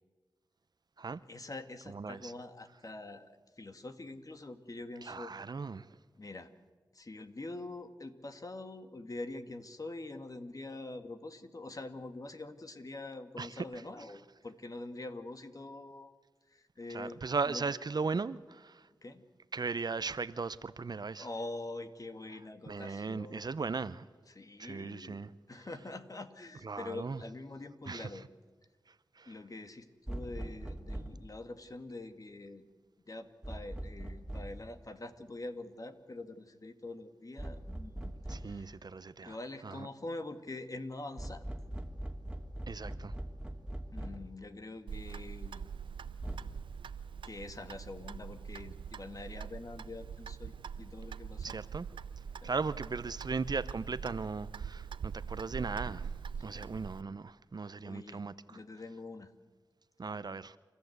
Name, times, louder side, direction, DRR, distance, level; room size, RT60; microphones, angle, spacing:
voice 1, 1.3-3.3 3.6-5.3 6.1-6.5 6.9-16.1 16.5-17.2 17.5-17.6 19.0-19.2 21.2-23.5 24.3-25.2 25.5-28.3 29.3-32.7 33.1-38.8 39.2-41.5 43.9-45.7 47.2-51.6 52.4-52.5 56.4-56.7 57.8-59.3, left 2 dB, 45° left, 2.1 m, -45 dB
voice 2, 1.9-2.3 5.1-5.9 13.4-13.6 16.9-18.8 19.5-21.3 22.7-24.0 24.6-25.3 26.6-27.2 27.9-28.1 29.2-29.3 38.3-39.4 39.6-39.9 42.7-43.1 51.4-51.9 52.4-56.1 56.4-58.6 60.0-60.6, right 4 dB, 55° right, 0.8 m, -37 dB
sound 1, 30.1-31.3 33.4-34.7 37.4-38.6 41.2-44.3 46.2-46.4, right 1 dB, 10° right, 2.8 m, -41 dB
Clock, 44.9-57.0, right 6 dB, 85° right, 0.6 m, -43 dB
30.0 x 14.0 x 8.1 m
cardioid pair, 45°, 8 cm